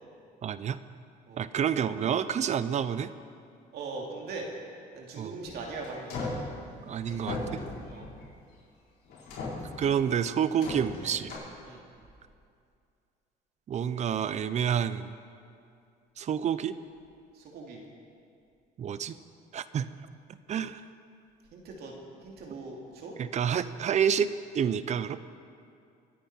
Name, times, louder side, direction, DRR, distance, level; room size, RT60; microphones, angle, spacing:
voice 1, 0.4-0.8 1.4-3.1 5.2-5.3 6.9-7.4 9.8-11.3 13.7-15.1 16.2-16.8 18.8-19.1 19.5-19.9 20.5-20.8 23.2-24.3 24.5-25.2, right 8 dB, 45° right, 14 dB, 0.6 m, -28 dB
voice 2, 3.7-4.5 4.9-6.1 7.9-8.1 11.6-11.8 17.3-17.8 21.5-21.9 22.2-23.1, right 3 dB, 70° right, -1 dB, 2.7 m, -40 dB
sound 1, 5.5-6.5 7.1-8.4 9.1-10.1 10.6-11.3, left 2 dB, 70° left, 4.7 m, -37 dB
25.0 x 9.4 x 4.4 m, 2.4 s
cardioid pair, 110°, 17 cm